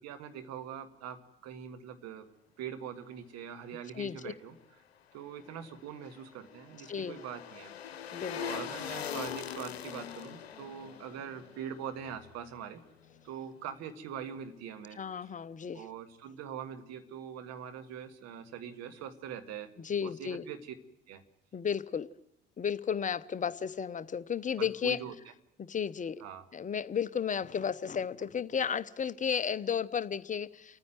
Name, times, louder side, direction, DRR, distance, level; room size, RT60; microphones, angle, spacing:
voice 1, 0.0-2.2 2.6-4.6 5.1-7.9 8.3-12.8 13.2-15.0 15.7-19.7 20.2-20.7 21.1-21.2 24.6-25.1 26.2-26.4, right 8 dB, 55° right, 9 dB, 1.8 m, -43 dB
voice 2, 3.9-4.3 6.9-7.2 8.1-8.6 15.0-15.9 19.8-20.5 21.5-22.1 22.6-25.0 25.6-26.2 26.5-30.8, left 7 dB, 25° left, 15 dB, 0.8 m, -33 dB
sound 1, 5.6-12.8 13.1-13.2, left 9 dB, 80° left, 0.8 m, -42 dB
28.5 x 9.7 x 9.4 m, 0.79 s
figure-of-eight pair, 55°, 31 cm